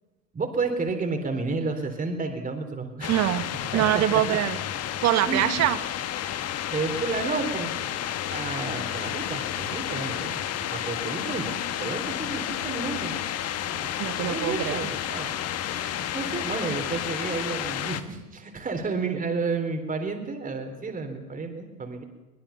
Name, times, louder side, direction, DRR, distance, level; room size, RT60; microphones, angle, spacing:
voice 1, 0.3-3.1 3.7-4.2 5.3-5.4 6.7-7.7 8.3-10.4 10.7-11.5 11.8-13.1 13.6-13.9 14.2-22.0, right 4 dB, 15° right, 4 dB, 3.7 m, -31 dB
sound 1, 3.0-18.0, left 11 dB, 30° left, 1.4 m, -31 dB
voice 2, 3.1-3.4 3.7-4.5 5.0-5.8 14.0-14.9, right 13 dB, 35° right, 13 dB, 1.3 m, -24 dB
22.5 x 21.5 x 5.8 m, 1.2 s
figure-of-eight pair, 95°, 49 cm